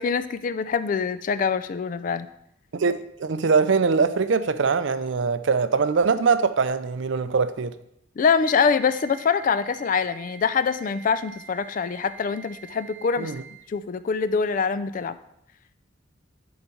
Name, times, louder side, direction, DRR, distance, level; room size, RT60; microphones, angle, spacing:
voice 1, 0.0-2.3 8.2-13.3 13.7-15.2, left 5 dB, 40° left, 0.3 m, -24 dB
voice 2, 2.7-7.7 13.2-13.4, right 5 dB, 60° right, 0.5 m, -22 dB
Wind instrument woodwind instrument, 8.4-13.7, right 7 dB, 80° right, 1.1 m, -46 dB
10.5 x 4.0 x 4.5 m
head